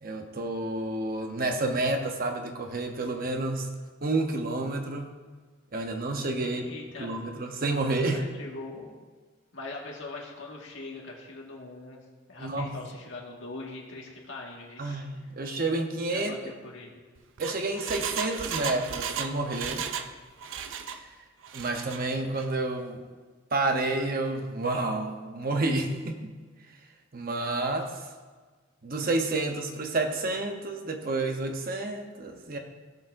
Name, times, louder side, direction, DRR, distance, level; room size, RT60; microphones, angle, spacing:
voice 1, 0.0-3.7 4.0-5.2 5.7-6.6 7.0-8.2 12.4-12.8 14.8-16.4 17.4-19.8 20.9-21.0 21.5-23.0 23.5-26.4 27.1-28.0 28.8-32.6, right 2 dB, 50° right, 4 dB, 0.9 m, -30 dB
voice 2, 6.4-7.3 8.1-8.9 9.5-12.0 12.3-15.0 16.1-16.9, left 2 dB, 75° left, -2 dB, 1.8 m, -42 dB
Engine, 17.2-20.1 20.4-21.0 21.4-22.0 22.4-22.5, right 7 dB, 75° right, 0.5 m, -35 dB
16.0 x 6.7 x 2.6 m, 1.4 s
head